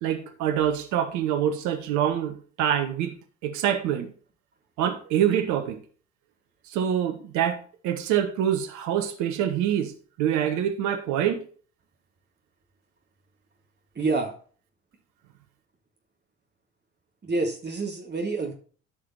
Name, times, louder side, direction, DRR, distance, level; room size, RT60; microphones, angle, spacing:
voice 1, 0.0-4.1 4.8-5.8 6.7-9.9 10.2-11.4, right 10 dB, 60° right, 7 dB, 1.2 m, -25 dB
voice 2, 14.0-14.3 17.2-18.5, right 3 dB, 30° right, 1 dB, 2.0 m, -27 dB
13.5 x 5.0 x 4.0 m, 0.42 s
figure-of-eight pair, 50°, 33 cm